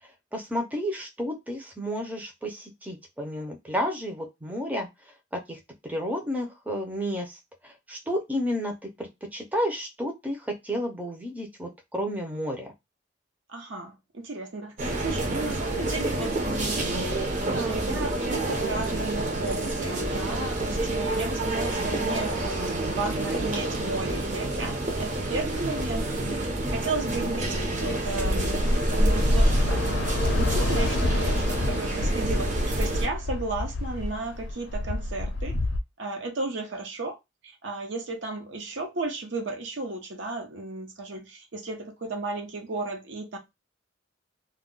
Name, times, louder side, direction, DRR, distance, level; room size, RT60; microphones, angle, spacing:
voice 1, 0.3-4.9 5.3-12.7, equal, 10° right, 0.5 m, -31 dB
voice 2, 13.5-16.9 17.5-28.6 28.9-30.0 30.4-35.5 36.0-37.2 37.4-43.4, right 3 dB, 70° right, 0.8 m, -34 dB
sound 1, 14.8-33.1, right 1 dB, 40° right, 0.7 m, -28 dB
Bus / Traffic noise roadway noise, 27.0-35.8, left 2 dB, 70° left, 0.5 m, -29 dB
2.3 x 2.2 x 3.7 m
head